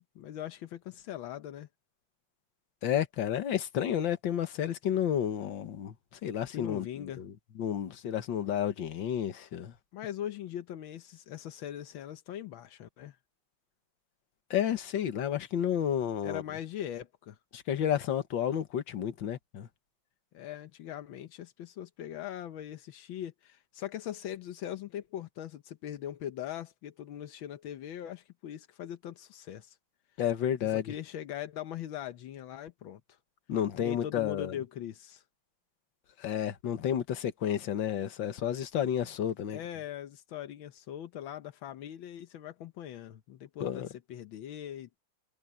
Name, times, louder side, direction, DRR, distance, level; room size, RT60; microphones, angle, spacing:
voice 1, 0.0-1.7 6.5-7.2 9.9-13.2 16.2-17.4 20.3-29.8 30.6-33.2 33.8-35.2 39.5-45.0, left 11 dB, 85° left, 1.7 m, -41 dB
voice 2, 2.8-5.9 6.2-7.3 7.6-9.7 14.5-16.4 17.5-19.7 30.2-30.8 33.5-34.5 36.2-39.6 43.6-43.9, left 9 dB, 70° left, 2.0 m, -31 dB
omnidirectional pair, 2.1 m